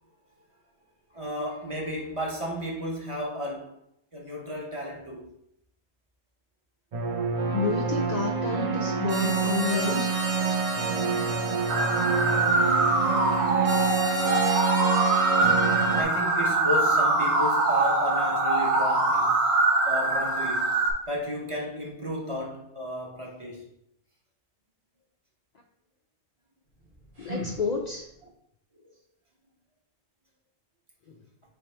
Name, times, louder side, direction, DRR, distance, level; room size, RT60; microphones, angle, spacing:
voice 1, 1.1-3.8 4.1-5.3 15.4-19.4 19.8-23.6, equal, 25° right, 0.9 m, -33 dB
sound 1, 6.9-16.0, right 5 dB, 65° right, 0.3 m, -27 dB
voice 2, 7.5-10.1 27.2-28.1 31.1-31.2, left 5 dB, 85° left, 0.3 m, -30 dB
sound 2, 11.7-20.9, right 2 dB, 85° right, 1.2 m, -24 dB
sound 3, 26.6-28.3, equal, 45° right, 1.2 m, -40 dB
3.6 x 3.5 x 4.3 m
omnidirectional pair, 1.3 m